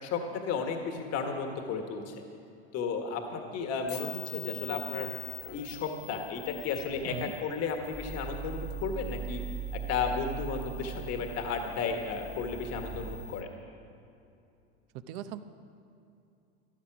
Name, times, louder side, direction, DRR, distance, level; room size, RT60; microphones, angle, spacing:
voice 1, 0.0-2.2 2.7-5.1 5.4-9.4 9.7-13.5, left 5 dB, 50° left, 4 dB, 1.7 m, -34 dB
sound 1, 3.8-13.4, left 4 dB, 30° left, 1.2 m, -46 dB
sound 2, 7.9-13.2, right 7 dB, 10° left, 0.7 m, -40 dB
voice 2, 14.9-15.4, right 11 dB, 65° right, 10 dB, 0.9 m, -39 dB
14.0 x 12.0 x 6.1 m, 2.6 s
supercardioid pair, 110°, 33 cm